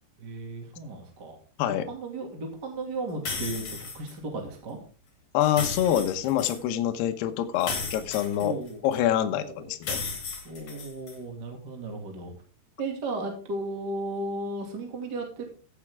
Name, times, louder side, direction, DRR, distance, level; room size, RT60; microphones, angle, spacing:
voice 1, 0.2-1.4 1.6-4.8 8.4-8.8 9.4-9.7 10.4-12.3 12.8-15.5, right 2 dB, 30° right, 2 dB, 2.2 m, -35 dB
sound 1, 3.3-4.1 5.4-6.6 7.6-9.0 9.8-11.2, left 4 dB, 40° left, 3.3 m, -35 dB
voice 2, 5.3-8.5 8.8-10.0, left 11 dB, 75° left, 7 dB, 2.9 m, -26 dB
15.5 x 8.9 x 3.6 m, 0.38 s
omnidirectional pair, 5.0 m